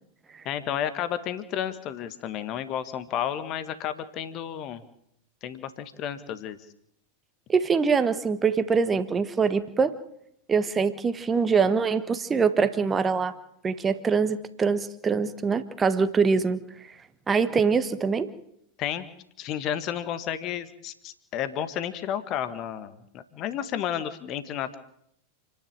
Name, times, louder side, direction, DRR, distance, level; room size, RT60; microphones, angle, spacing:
voice 1, 0.4-4.8 5.4-6.6 18.8-19.1 19.4-24.8, left 10 dB, 35° left, 12 dB, 1.8 m, -32 dB
voice 2, 7.5-10.0 10.5-13.4 13.6-16.6 17.3-18.3, right 5 dB, 20° right, 12 dB, 1.5 m, -24 dB
29.0 x 11.0 x 9.0 m, 0.75 s
figure-of-eight pair, 90°, 0 cm